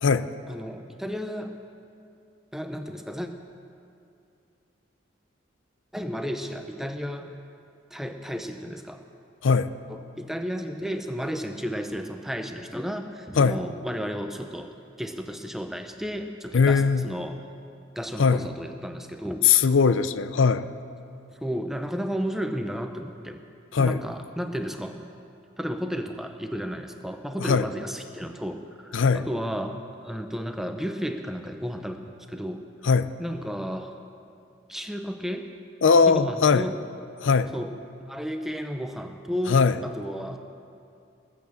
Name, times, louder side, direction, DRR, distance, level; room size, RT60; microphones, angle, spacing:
voice 1, 0.5-1.6 2.5-3.3 5.9-7.3 7.9-9.0 9.9-17.4 18.0-19.5 21.4-23.4 23.8-25.0 25.6-32.6 33.2-34.0 34.7-35.5 36.1-36.8 37.5-37.8 38.0-40.4, equal, ahead, 6 dB, 0.6 m, -33 dB
voice 2, 16.5-17.1 18.2-18.4 19.4-20.6 23.7-24.0 27.4-27.7 28.9-29.2 32.8-33.1 35.8-36.7 37.2-37.5 39.5-39.8, left 5 dB, 80° left, 13 dB, 0.5 m, -20 dB
20.0 x 8.6 x 7.1 m, 2.5 s
head